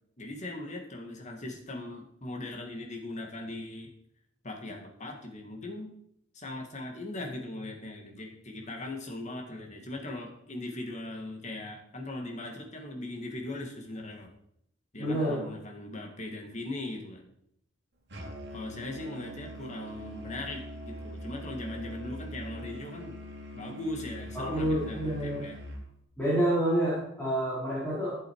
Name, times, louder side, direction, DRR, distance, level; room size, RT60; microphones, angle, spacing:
voice 1, 0.2-3.9 4.4-5.9 6.3-14.3 14.9-17.3 18.5-23.2 23.5-25.6, left 2 dB, 35° left, 1 dB, 2.1 m, -39 dB
voice 2, 15.0-15.4 24.3-25.5 26.2-28.2, right 1 dB, 10° left, -10 dB, 5.1 m, -28 dB
Musical instrument, 18.1-25.9, equal, 60° right, 2.5 m, -42 dB
15.0 x 7.9 x 4.8 m, 0.71 s
head